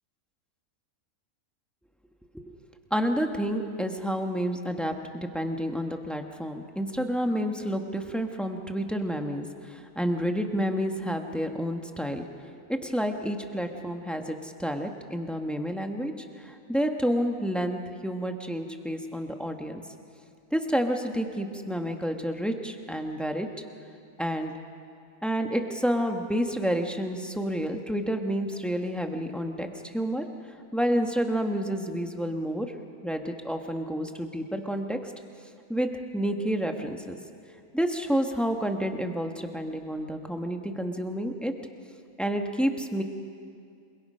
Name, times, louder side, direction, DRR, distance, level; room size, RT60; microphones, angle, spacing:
voice 1, 2.9-19.8 20.5-23.5 24.2-24.5 25.2-29.7 29.9-30.2 30.7-32.7 33.0-35.1 35.7-37.2 37.7-41.5 42.2-43.0, equal, ahead, 4 dB, 1.1 m, -29 dB
28.0 x 22.0 x 5.6 m, 2.4 s
omnidirectional pair, 1.6 m